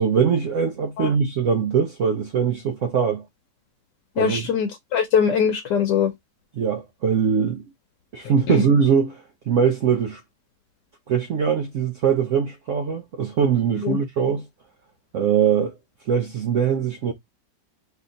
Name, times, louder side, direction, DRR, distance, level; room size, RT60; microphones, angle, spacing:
voice 1, 0.0-3.2 4.2-4.5 6.6-7.6 8.1-10.2 11.1-14.4 15.1-15.7 16.1-17.1, right 7 dB, 75° right, 0.7 m, -22 dB
voice 2, 4.2-6.1 8.5-8.6 13.8-14.0, left 7 dB, 75° left, 1.2 m, -22 dB
3.2 x 2.8 x 3.7 m
omnidirectional pair, 1.9 m